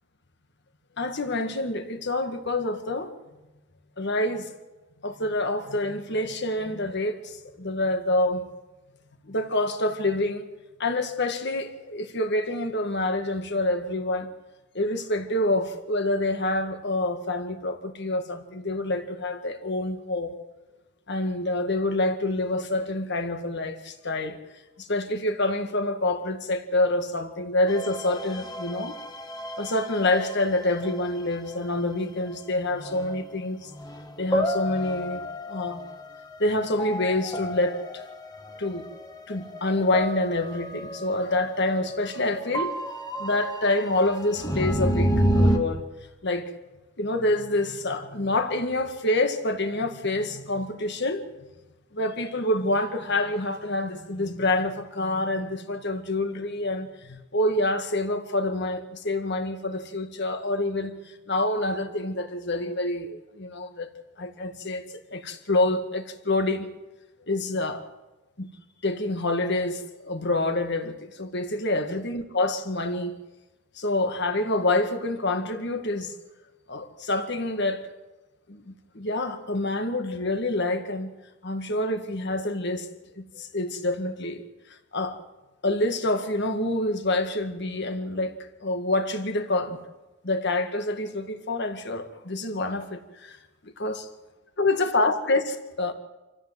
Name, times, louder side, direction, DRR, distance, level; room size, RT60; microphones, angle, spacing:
voice 1, 1.0-3.1 4.0-4.6 5.0-8.4 9.2-10.5 10.8-14.3 14.7-20.4 21.1-24.4 24.8-29.0 29.6-33.7 34.2-35.8 36.4-38.0 38.6-38.9 39.3-42.7 43.2-45.9 46.2-46.5 47.0-51.2 51.9-63.9 64.2-66.7 67.3-67.9 68.4-68.5 68.8-73.2 73.7-76.1 76.7-77.8 78.5-81.1 81.4-82.9 83.1-85.2 85.6-88.3 88.6-89.8 90.2-93.4 93.6-94.1 94.6-95.9, left 2 dB, 55° left, 1.8 m, -27 dB
sound 1, 27.7-31.6 32.8-33.2 33.7-45.6, equal, 20° left, 1.5 m, -30 dB
26.0 x 14.5 x 7.7 m
head